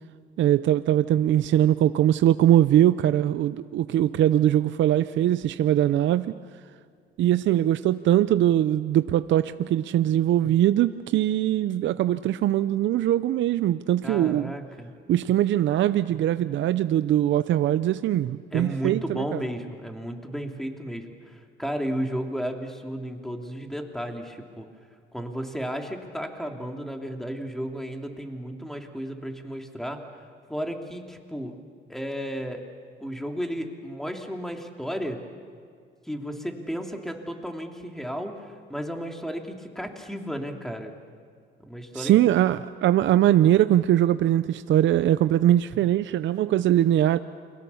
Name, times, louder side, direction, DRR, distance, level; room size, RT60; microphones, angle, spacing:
voice 1, 0.4-6.3 7.2-14.5 15.1-19.4 41.9-47.2, right 12 dB, 70° right, 13 dB, 0.6 m, -21 dB
voice 2, 14.0-14.9 18.5-24.7 25.1-30.0 30.5-31.6 31.9-32.6 33.0-35.2 36.0-40.9 41.7-42.1, equal, ahead, 3 dB, 3.0 m, -33 dB
29.0 x 22.5 x 7.1 m, 2.1 s
cardioid pair, 90°, 20 cm